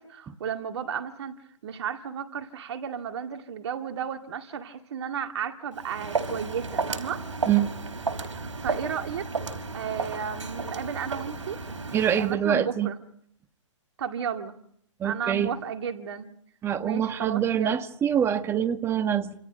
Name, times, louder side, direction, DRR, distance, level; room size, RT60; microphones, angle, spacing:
voice 1, 0.0-1.3 1.6-7.3 8.2-9.3 9.7-11.6 12.2-13.0 14.0-14.6 15.0-16.3 16.8-17.8, right 7 dB, 55° right, 5 dB, 2.1 m, -33 dB
Walk footsteps, 5.7-12.3, right 4 dB, 80° right, 4.8 m, -33 dB
voice 2, 11.9-12.9 15.0-15.5 16.6-19.3, right 9 dB, 15° right, 10 dB, 1.4 m, -25 dB
29.0 x 27.5 x 5.3 m, 0.69 s
hypercardioid pair, 135°, 16 cm